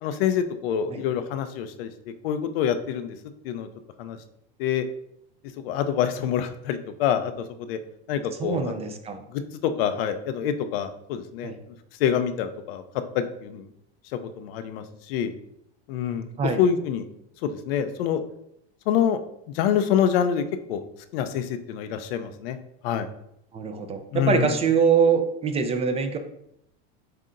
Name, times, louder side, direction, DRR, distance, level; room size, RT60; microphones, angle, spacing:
voice 1, 0.0-3.2 3.4-3.7 4.0-4.2 4.6-4.9 5.6-7.8 8.1-8.9 9.3-11.5 12.0-12.8 13.1-13.7 14.1-15.3 15.9-16.3 16.6-17.1 17.4-18.2 18.9-19.2 19.5-20.4 20.7-20.8 21.1-22.6 22.8-23.1 24.1-24.5, left 8 dB, 80° left, 9 dB, 0.6 m, -26 dB
voice 2, 8.4-9.2 11.4-11.6 16.4-16.6 23.5-26.2, right 6 dB, 20° right, 7 dB, 0.4 m, -23 dB
7.6 x 2.8 x 2.5 m, 0.77 s
supercardioid pair, 130°, 29 cm